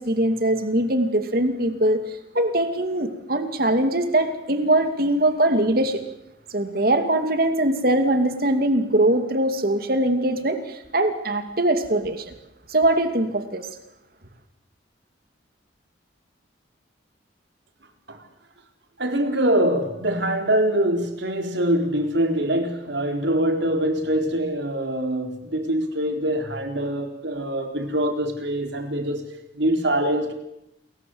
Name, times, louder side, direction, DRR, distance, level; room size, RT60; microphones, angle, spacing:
voice 1, 0.0-2.0 2.3-6.0 6.5-12.3 12.7-13.7, right 1 dB, 55° right, 8 dB, 2.6 m, -22 dB
voice 2, 19.0-29.3 29.5-30.3, right 1 dB, 70° right, 5 dB, 4.1 m, -24 dB
29.0 x 22.0 x 8.0 m, 0.86 s
head